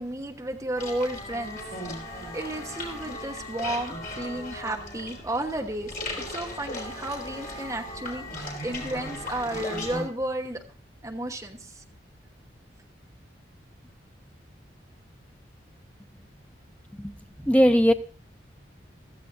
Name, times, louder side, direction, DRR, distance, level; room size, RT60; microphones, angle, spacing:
voice 1, 0.0-5.9 6.3-10.6 11.0-11.8 17.4-17.5, right 1 dB, 15° right, 3 dB, 1.1 m, -33 dB
sound 1, 0.7-10.0, left 1 dB, 50° left, 3.5 m, -37 dB
voice 2, 17.5-17.9, equal, 5° left, 8 dB, 0.5 m, -18 dB
15.0 x 14.0 x 2.7 m, 0.40 s
head